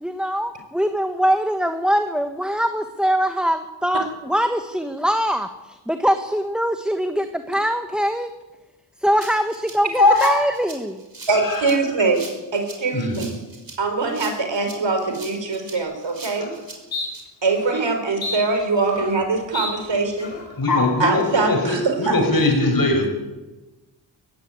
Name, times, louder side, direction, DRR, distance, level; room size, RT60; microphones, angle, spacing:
voice 1, 0.0-8.3 9.0-11.0, equal, ahead, 8 dB, 1.2 m, -22 dB
Rattle (instrument), 9.2-17.2, right 3 dB, 45° right, 5.7 m, -41 dB
voice 2, 10.0-10.4 11.3-11.7 12.9-13.2 20.6-23.1, left 2 dB, 45° left, 3 dB, 6.2 m, -20 dB
voice 3, 11.3-13.3 13.8-16.5 17.4-20.3 21.0-22.1, right 3 dB, 70° right, 6 dB, 4.6 m, -22 dB
sound 1, 15.8-15.9 16.3-16.5 16.9-17.1 17.6-17.8 18.2-19.2 19.5-19.7 20.2-20.5, left 3 dB, 80° left, 5.0 m, -31 dB
18.0 x 16.0 x 9.3 m, 1.1 s
wide cardioid pair, 75°, 45 cm